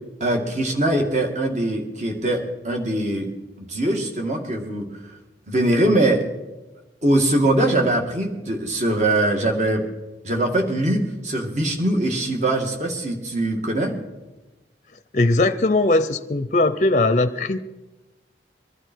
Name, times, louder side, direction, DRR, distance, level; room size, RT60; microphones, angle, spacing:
voice 1, 0.2-3.3 3.6-4.9 5.5-6.2 7.0-9.8 10.2-13.9, right 1 dB, 40° right, 2 dB, 2.3 m, -22 dB
voice 2, 15.1-17.6, left 2 dB, 40° left, 10 dB, 0.6 m, -19 dB
21.5 x 12.5 x 4.6 m, 1.1 s
head